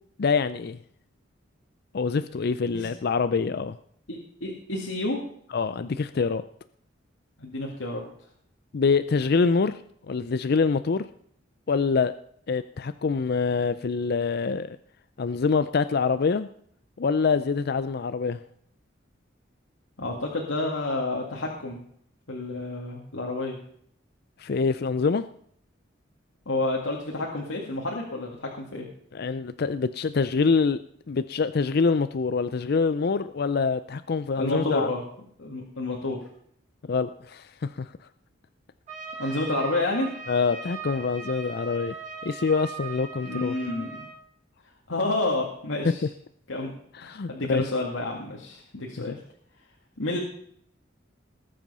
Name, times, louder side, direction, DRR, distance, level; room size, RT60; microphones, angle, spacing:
voice 1, 0.2-0.8 1.9-3.8 5.5-6.4 8.7-9.8 10.1-11.1 11.7-12.1 12.5-14.8 15.2-16.5 17.0-18.4 24.4-25.2 29.1-30.8 31.1-34.9 36.9-37.9 40.3-41.9 42.2-43.6 46.9-47.6 49.0-49.1, left 4 dB, 55° left, 12 dB, 0.5 m, -25 dB
voice 2, 4.1-5.2 7.4-8.0 20.0-21.8 22.3-23.6 26.5-28.9 34.4-35.0 35.4-36.2 39.2-40.1 43.2-44.1 44.9-46.1 46.5-46.7 47.0-49.2 50.0-50.2, left 2 dB, 80° left, -1 dB, 2.1 m, -29 dB
Trumpet, 38.9-44.2, right 5 dB, 40° right, 5.1 m, -39 dB
19.5 x 7.7 x 5.5 m, 0.66 s
head